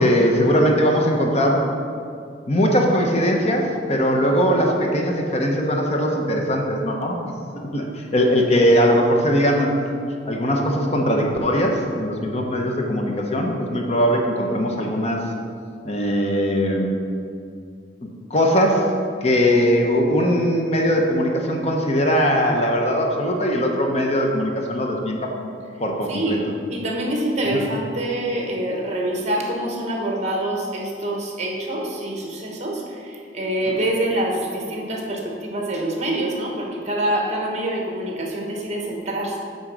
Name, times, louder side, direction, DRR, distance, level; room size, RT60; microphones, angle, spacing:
voice 1, 0.0-1.7 2.5-7.2 7.7-9.7 10.2-15.2 15.8-16.9 18.3-18.9 19.2-25.3 25.8-26.4 27.5-27.7, equal, 35° left, 1 dB, 0.9 m, -20 dB
voice 2, 26.1-26.4 26.7-39.4, right 1 dB, 40° right, -1 dB, 1.3 m, -26 dB
8.8 x 3.9 x 6.1 m, 2.3 s
head